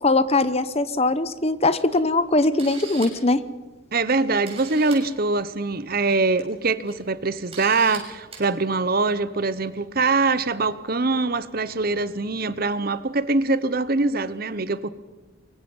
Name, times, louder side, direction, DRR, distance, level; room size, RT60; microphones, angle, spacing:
voice 1, 0.0-3.4, left 2 dB, 30° left, 0.9 m, -21 dB
Camera, 1.9-2.0 2.4-3.3 4.1-4.2 4.4-5.0 6.2-6.4 6.9-7.0 7.5-8.0 8.3-8.4, right 5 dB, 30° right, 6.8 m, -39 dB
voice 2, 3.9-14.9, right 3 dB, 45° right, 1.0 m, -23 dB
24.0 x 24.0 x 5.5 m
head